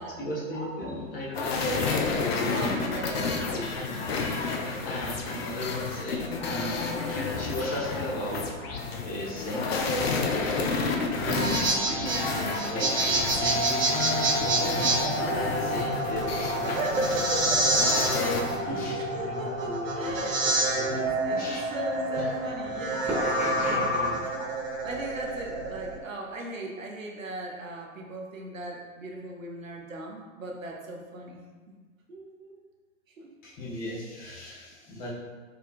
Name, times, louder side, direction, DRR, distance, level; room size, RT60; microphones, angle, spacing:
voice 1, 0.0-2.8 3.2-4.0 4.5-10.5 11.1-12.9 13.3-16.8 18.0-21.0 21.3-21.6 22.1-22.3 22.9-24.9 33.4-35.1, left 1 dB, 20° left, -5 dB, 0.8 m, -37 dB
sound 1, 1.3-18.6, left 4 dB, 50° left, 0.5 m, -30 dB
voice 2, 2.5-4.0 11.8-13.7 16.6-17.8 18.5-23.9 24.8-31.4 32.1-32.6 33.2-33.3, right 2 dB, 80° right, 0 dB, 0.7 m, -38 dB
sound 2, 6.1-24.1, equal, 5° right, 0.4 m, -35 dB
sound 3, 11.2-26.0, right 2 dB, 50° right, 1.1 m, -28 dB
4.7 x 2.3 x 2.5 m, 1.4 s
figure-of-eight pair, 100°, 39 cm